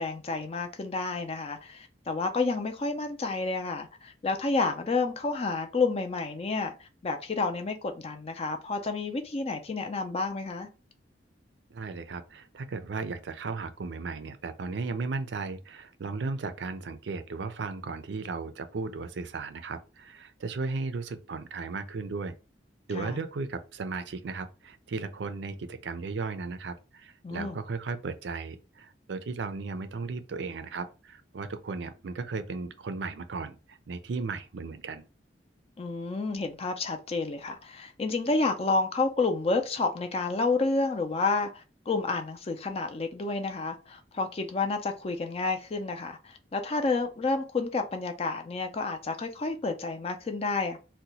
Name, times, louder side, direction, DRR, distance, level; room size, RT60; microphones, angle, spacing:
voice 1, 0.0-6.7 7.0-10.7 22.9-23.1 27.2-27.6 35.8-50.8, left 3 dB, 35° left, 0.5 m, -30 dB
voice 2, 11.7-22.3 22.9-35.0, right 4 dB, 70° right, 0.4 m, -35 dB
2.8 x 2.2 x 4.0 m
head